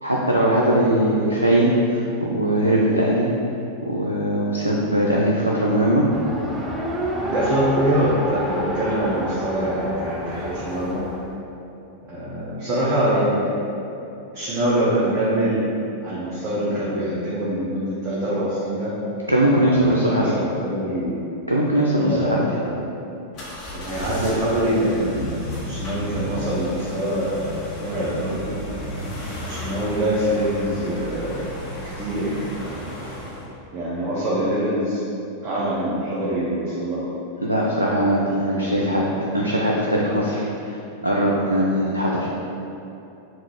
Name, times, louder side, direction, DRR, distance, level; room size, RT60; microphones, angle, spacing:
voice 1, 0.0-3.3 3.9-6.1 19.3-20.3 21.5-22.4 37.4-39.0 39.3-40.4 41.0-42.4, right 1 dB, 85° right, -4 dB, 0.4 m, -20 dB
Race car auto racing, 6.1-11.3, equal, 15° right, 0.4 m, -29 dB
voice 2, 7.2-11.0 12.1-13.4 14.3-15.7 16.0-19.0 19.7-21.1 22.0-22.8 23.7-27.3 27.8-28.5 29.4-31.5 31.9-32.8 33.7-35.0 35.4-37.0 38.5-39.0, right 1 dB, 35° right, -9 dB, 0.8 m, -24 dB
sound 1, 23.3-33.5, equal, 35° left, 1.0 m, -33 dB
3.8 x 2.3 x 4.5 m, 2.9 s
figure-of-eight pair, 90°, 0 cm